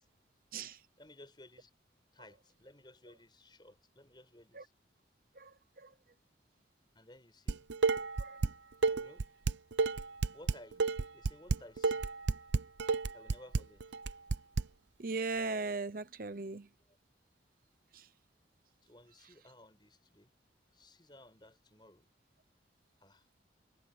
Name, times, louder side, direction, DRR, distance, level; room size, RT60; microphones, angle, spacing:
voice 1, 1.0-1.7 2.1-4.7 6.9-7.7 8.9-9.2 10.3-10.8 11.1-12.1 13.1-13.8 18.8-20.3 20.7-22.1 23.0-23.3, left 1 dB, 25° left, 6.0 m, -57 dB
voice 2, 5.4-5.9 8.2-8.4 15.0-16.7 17.9-18.1, right 3 dB, 50° right, 0.8 m, -38 dB
Dishes pots and pans, 7.5-8.5 8.8-14.6, right 4 dB, 80° right, 0.7 m, -30 dB
head